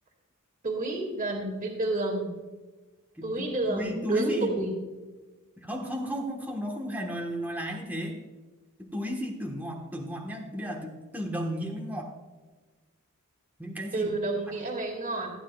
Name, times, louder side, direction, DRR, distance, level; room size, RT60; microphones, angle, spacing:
voice 1, 0.6-2.3 3.2-4.7 13.9-15.3, right 2 dB, 35° right, -1 dB, 2.1 m, -29 dB
voice 2, 3.2-4.5 5.6-8.2 8.8-12.1 13.6-14.1, equal, 10° right, 0 dB, 1.2 m, -34 dB
15.5 x 10.0 x 2.3 m, 1.3 s
head